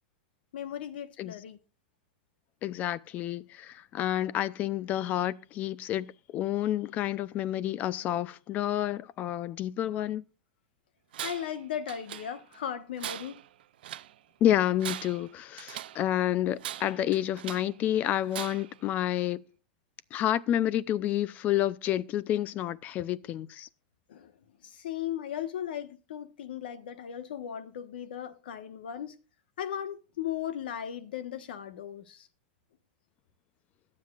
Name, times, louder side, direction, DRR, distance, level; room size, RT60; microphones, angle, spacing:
voice 1, 0.5-1.6 11.2-13.4 24.1-24.3 24.6-29.2 29.6-32.3, left 10 dB, 85° left, 1.3 m, -37 dB
voice 2, 2.6-6.1 6.3-10.2 14.4-19.4 20.1-23.7, left 12 dB, 30° left, 0.5 m, -29 dB
Tools, 11.1-11.6 11.9-12.6 13.0-14.1 14.7-16.0 16.6-17.8 18.3-18.8, right 12 dB, 85° right, 0.5 m, -40 dB
21.5 x 7.6 x 2.5 m
supercardioid pair, 150°, 5 cm